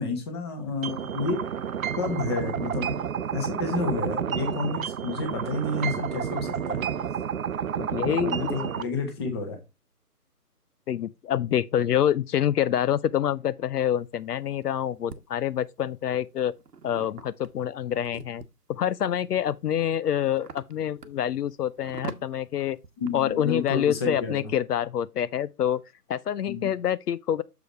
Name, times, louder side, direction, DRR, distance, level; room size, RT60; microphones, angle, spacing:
voice 1, 0.0-1.4 2.0-2.9 3.3-6.8 8.2-9.6 23.0-24.5 26.4-26.7, left 3 dB, 15° left, 1.1 m, -30 dB
sound 1, 0.8-8.8, right 8 dB, 60° right, 0.7 m, -30 dB
voice 2, 7.8-8.6 10.9-16.5 16.8-18.4 18.7-22.8 23.1-25.8 26.1-27.4, left 10 dB, 75° left, 0.6 m, -26 dB
sound 2, 14.0-15.2 15.9-18.7 19.3-24.3, right 5 dB, 85° right, 1.1 m, -44 dB
6.9 x 4.9 x 4.6 m
hypercardioid pair, 160°, 47 cm